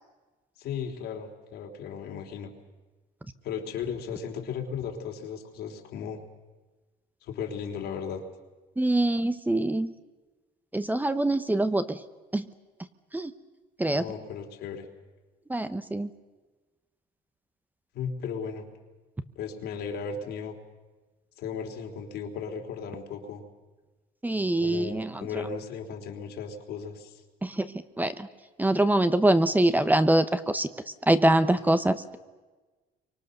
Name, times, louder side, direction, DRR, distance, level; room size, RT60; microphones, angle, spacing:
voice 1, 0.6-2.5 3.4-6.2 7.2-8.2 13.9-14.9 17.9-18.7 19.4-20.5 21.4-23.4 24.6-27.2, left 6 dB, 75° left, 3 dB, 3.6 m, -36 dB
voice 2, 8.8-9.9 10.7-12.0 12.3-12.5 13.1-13.3 13.8-14.0 15.5-16.1 24.2-25.3 27.4-27.7 28.0-28.3 28.6-30.7 31.1-32.2, right 1 dB, 10° right, 11 dB, 1.0 m, -24 dB
28.5 x 24.5 x 6.7 m, 1.3 s
cardioid pair, 110°, 17 cm